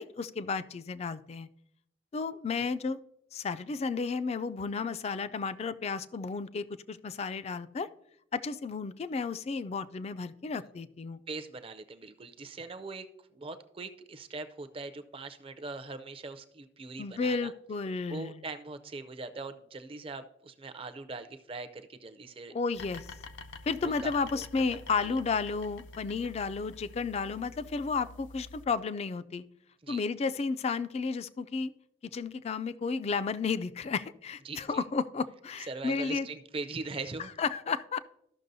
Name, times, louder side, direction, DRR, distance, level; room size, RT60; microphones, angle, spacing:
voice 1, 0.0-1.5 2.1-3.0 3.3-7.9 8.3-11.2 17.0-18.4 22.5-23.1 23.7-29.5 29.9-31.7 32.1-36.3 37.4-38.0, left 4 dB, 35° left, 14 dB, 0.3 m, -32 dB
voice 2, 11.3-13.1 13.3-17.5 18.1-22.5 23.8-24.4 25.0-25.2 29.8-30.0 34.4-34.8 35.7-37.3, right 3 dB, 30° right, 10 dB, 0.5 m, -41 dB
sound 1, 22.7-28.7, left 3 dB, 85° left, 0.6 m, -48 dB
14.0 x 6.0 x 2.6 m, 0.77 s
head